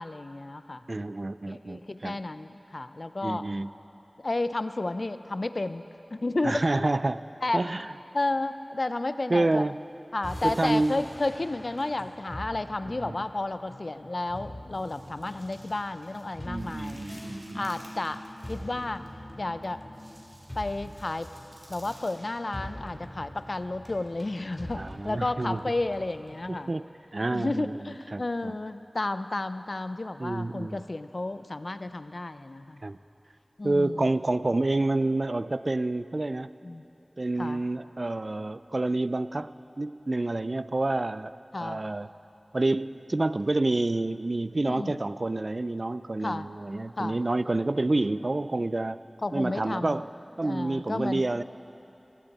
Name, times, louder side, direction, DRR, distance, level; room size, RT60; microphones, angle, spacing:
voice 1, 0.0-0.8 1.5-3.4 4.2-5.8 6.1-6.9 7.4-7.7 8.1-9.7 10.1-17.1 17.5-19.0 19.4-19.8 20.6-21.3 21.7-26.7 27.3-32.8 33.6-34.1 36.6-36.8 37.4-37.6 41.5-41.8 44.7-45.0 46.2-46.5 47.0-47.2 49.2-50.0 50.4-51.3, left 2 dB, 60° left, 12 dB, 0.4 m, -32 dB
voice 2, 0.9-2.2 3.2-3.7 6.4-7.3 7.5-7.9 9.3-9.8 10.4-11.0 12.8-13.2 16.5-17.7 24.8-25.6 26.5-26.9 27.1-27.7 28.1-28.6 30.2-30.8 32.8-33.0 33.6-36.5 37.2-41.3 41.6-42.1 42.5-49.0 49.3-50.1 50.4-51.4, right 2 dB, 60° right, 15 dB, 0.3 m, -28 dB
sound 1, 9.6-10.0 10.4-11.9 12.3-12.4 13.1-13.2 13.4-13.6 14.0-14.1 14.7-19.1 19.6-22.1, equal, 35° right, 3.4 m, -56 dB
sound 2, 10.2-26.6, left 1 dB, 20° left, 2.6 m, -45 dB
sound 3, 17.1-20.2, left 1 dB, 45° left, 3.5 m, -46 dB
17.0 x 15.5 x 4.1 m, 3.0 s
wide cardioid pair, 45°, 0 cm